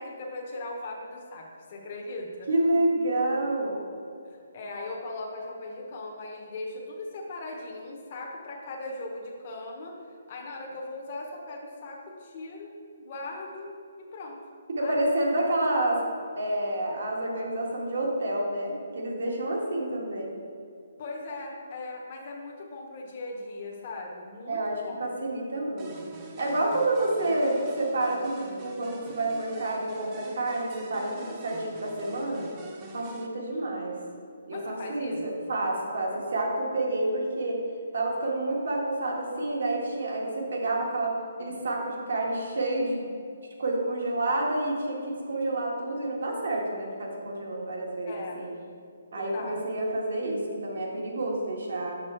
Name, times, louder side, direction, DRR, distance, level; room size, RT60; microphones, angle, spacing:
voice 1, 0.0-2.5 4.2-10.0 10.3-14.4 14.8-15.1 21.0-25.0 33.5-33.8 34.5-35.5 48.1-48.4 49.1-49.6, left 2 dB, 35° left, -1 dB, 1.0 m, -39 dB
voice 2, 2.5-3.8 14.7-16.0 16.4-20.3 24.5-26.1 26.4-32.5 32.9-34.0 34.5-37.6 37.9-43.1 43.6-48.5 49.1-52.0, right 1 dB, 70° right, -1 dB, 1.7 m, -29 dB
sound 1, 25.8-33.3, right 3 dB, 20° right, 0.6 m, -45 dB
6.1 x 5.8 x 4.4 m, 2.4 s
hypercardioid pair, 165°, 0 cm